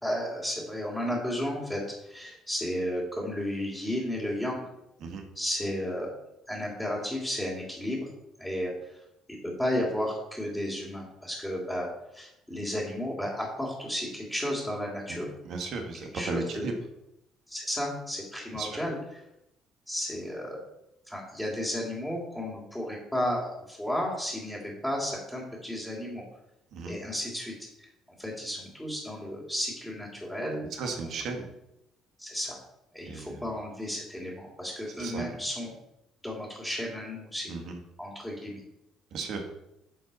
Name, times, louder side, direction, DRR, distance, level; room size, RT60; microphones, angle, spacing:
voice 1, 0.0-4.7 5.3-6.1 6.5-8.1 8.4-9.0 9.4-15.3 16.1-16.7 17.5-19.0 19.9-20.6 21.1-26.2 26.9-27.9 28.2-30.7 32.2-32.6 32.9-35.7 36.2-37.5 38.0-38.6, equal, 5° left, -6 dB, 3.1 m, -33 dB
voice 2, 15.1-16.7 18.5-18.8 26.7-27.0 30.8-31.5 33.1-33.4 35.0-35.2 37.5-37.8 39.1-39.4, right 4 dB, 65° right, 3 dB, 1.8 m, -35 dB
10.5 x 5.2 x 4.2 m, 0.86 s
hypercardioid pair, 55°, 0 cm